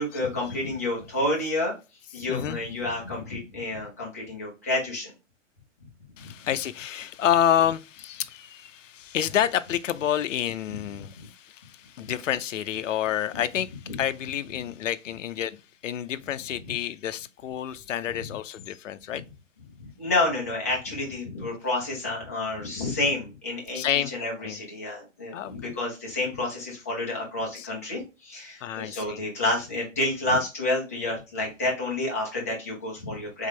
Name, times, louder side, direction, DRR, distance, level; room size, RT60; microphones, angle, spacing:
voice 1, 0.0-1.7 2.1-5.1 12.0-12.1 13.9-14.0 19.8-33.5, left 2 dB, 15° left, 0.5 m, -29 dB
voice 2, 6.2-13.7 14.0-19.2 23.7-24.1 24.4-24.6 25.3-25.7 27.6-27.7 28.6-29.2, left 10 dB, 75° left, 0.6 m, -28 dB
3.7 x 3.6 x 3.1 m
hypercardioid pair, 170°, 39 cm